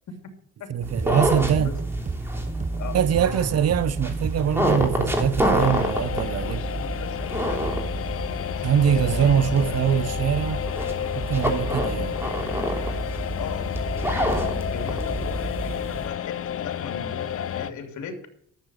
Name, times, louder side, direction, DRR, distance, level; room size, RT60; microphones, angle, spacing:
voice 1, 0.7-1.7 2.9-6.8 8.6-10.6 11.2-12.2, right 8 dB, 55° right, 0.8 m, -23 dB
sound 1, 0.8-16.1, right 1 dB, 10° right, 3.1 m, -28 dB
sound 2, 1.0-5.5, right 3 dB, 25° right, 0.9 m, -34 dB
sound 3, 5.6-17.7, left 9 dB, 50° left, 0.7 m, -31 dB
voice 2, 6.4-7.6 8.0-8.4 8.8-9.8 13.4-18.3, left 6 dB, 70° left, 3.0 m, -39 dB
12.0 x 7.9 x 6.3 m
cardioid pair, 90°, 30 cm